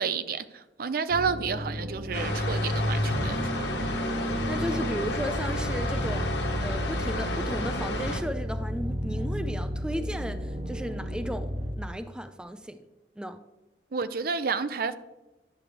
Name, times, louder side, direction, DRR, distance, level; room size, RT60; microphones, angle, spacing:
voice 1, 0.0-3.9 13.9-14.9, right 5 dB, 55° right, 0.5 m, -30 dB
sound 1, 1.1-11.7, equal, 35° right, 0.9 m, -32 dB
sound 2, 2.1-8.2, left 1 dB, 75° left, 1.4 m, -31 dB
voice 2, 4.5-6.3 6.6-11.5 11.8-12.8 13.2-13.4, equal, 5° right, 0.4 m, -35 dB
11.0 x 7.2 x 3.3 m
head